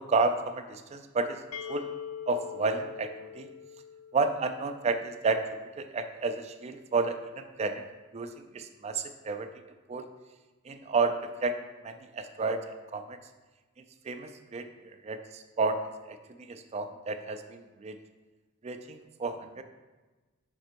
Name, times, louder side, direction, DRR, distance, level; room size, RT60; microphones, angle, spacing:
voice 1, 0.0-1.4 1.7-1.9 2.3-3.5 4.1-5.4 5.8-7.8 8.1-9.5 9.9-10.1 10.7-11.5 11.8-13.2 14.0-14.7 15.0-18.0 18.6-19.6, right 3 dB, 30° right, 8 dB, 0.3 m, -31 dB
sound 1, 1.5-5.2, left 8 dB, 70° left, 0.3 m, -43 dB
5.2 x 5.0 x 4.5 m, 1.2 s
head